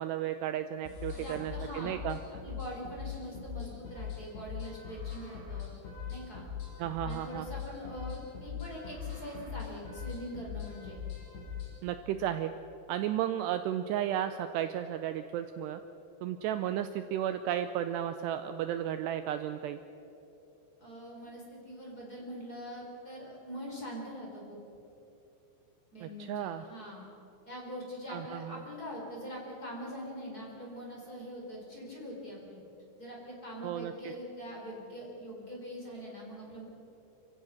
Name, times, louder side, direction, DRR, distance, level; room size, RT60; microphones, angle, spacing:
voice 1, 0.0-2.2 6.8-7.5 11.8-12.5 12.9-15.8 16.2-19.8 26.0-26.7 28.1-28.6 33.6-34.1, right 11 dB, 90° right, 9 dB, 2.4 m, -34 dB
sound 1, 0.9-11.7, left 7 dB, 70° left, 8.2 m, -41 dB
voice 2, 1.1-2.0 2.4-5.7 6.1-6.5 7.0-11.0 20.8-24.6 25.9-27.1 27.5-32.6 33.0-36.6, equal, 20° left, -2 dB, 4.0 m, -43 dB
27.5 x 15.5 x 6.4 m, 3.0 s
omnidirectional pair, 5.5 m